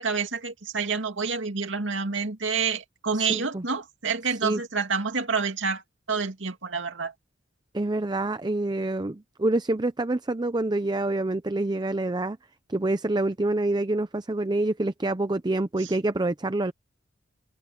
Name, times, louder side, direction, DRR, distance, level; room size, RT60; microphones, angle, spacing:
voice 1, 0.0-5.8 6.1-7.1 15.8-15.9, right 5 dB, 90° right, 2.4 m, -28 dB
voice 2, 3.1-3.6 4.4-4.6 7.7-12.4 12.7-16.7, right 2 dB, 20° right, 0.6 m, -27 dB
head